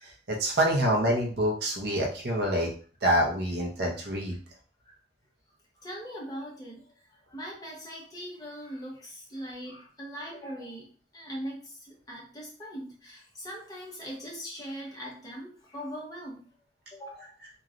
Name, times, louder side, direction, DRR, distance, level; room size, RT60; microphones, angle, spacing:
voice 1, 0.3-2.7 3.0-4.4, right 1 dB, 65° right, 0 dB, 0.7 m, -26 dB
voice 2, 5.8-16.5 16.9-17.3, equal, 20° left, -3 dB, 0.9 m, -41 dB
3.0 x 2.3 x 2.5 m, 0.40 s
head